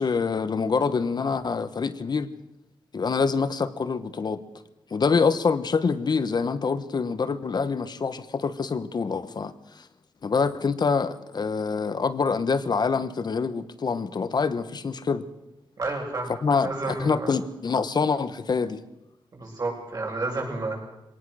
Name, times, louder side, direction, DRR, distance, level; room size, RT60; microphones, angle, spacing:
voice 1, 0.0-2.3 2.9-4.4 4.9-9.9 10.2-15.2 16.3-18.8, left 5 dB, 50° left, 1.2 m, -26 dB
voice 2, 15.8-16.3 16.6-17.3 19.3-20.8, right 3 dB, 45° right, 7.6 m, -30 dB
23.5 x 18.5 x 6.4 m
wide cardioid pair, 135°, 9 cm